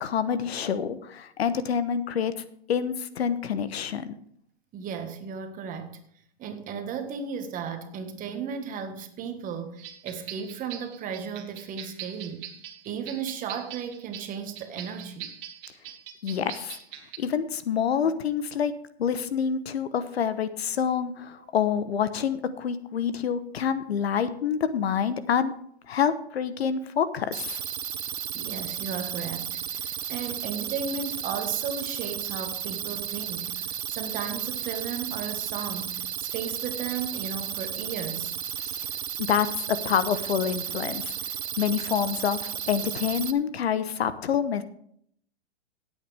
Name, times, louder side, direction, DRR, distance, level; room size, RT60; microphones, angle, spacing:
voice 1, 0.0-4.1 16.2-16.8 17.2-18.7 19.0-25.5 25.9-27.6 38.6-38.8 39.2-41.1 41.6-44.6, left 8 dB, 70° left, 1.1 m, -27 dB
voice 2, 4.7-6.0 6.4-12.6 12.8-15.3 28.3-38.3, right 6 dB, 25° right, 1.5 m, -35 dB
sound 1, 9.8-17.2, right 10 dB, 50° right, 2.0 m, -42 dB
sound 2, 27.3-43.3, right 9 dB, 85° right, 0.8 m, -34 dB
16.5 x 8.5 x 3.4 m
hypercardioid pair, 125°, 32 cm